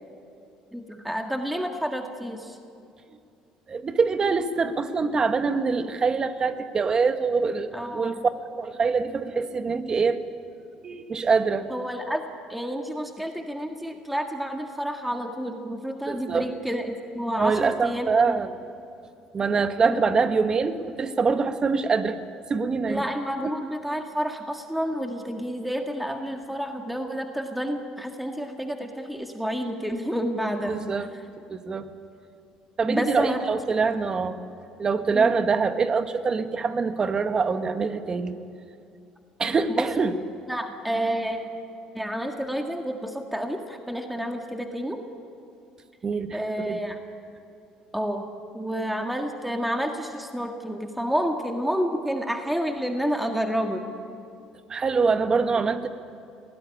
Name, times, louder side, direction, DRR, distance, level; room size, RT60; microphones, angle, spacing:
voice 1, 0.7-2.6 7.7-8.2 11.7-12.2 12.5-18.4 19.8-20.0 22.9-30.8 32.8-33.4 35.1-35.3 39.7-39.9 40.5-41.4 41.9-45.0 46.3-47.0 47.9-48.2 48.5-53.8, equal, 5° right, 3 dB, 1.8 m, -29 dB
voice 2, 3.7-8.3 8.6-10.2 10.8-11.7 16.1-16.5 17.4-18.6 19.3-22.2 22.5-23.1 30.7-31.1 31.5-31.9 32.8-34.4 34.8-38.4 39.4-40.1 46.0-46.8 54.7-55.9, right 5 dB, 35° right, 9 dB, 1.5 m, -24 dB
20.5 x 17.5 x 9.9 m, 2.5 s
supercardioid pair, 90°, 2 cm